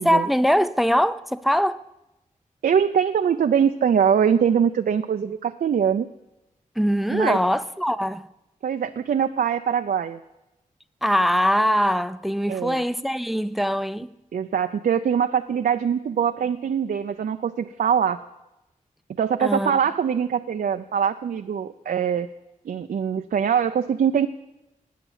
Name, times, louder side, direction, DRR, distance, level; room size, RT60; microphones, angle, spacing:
voice 1, 0.0-1.8 6.8-8.3 11.0-14.1 19.4-19.7, equal, ahead, 0.5 m, -22 dB
voice 2, 2.6-6.1 7.1-7.4 8.6-10.2 12.5-12.8 14.3-18.2 19.2-22.3 22.7-24.3, right 7 dB, 80° right, 0.5 m, -23 dB
17.5 x 9.4 x 7.4 m
wide cardioid pair, 70°, 14 cm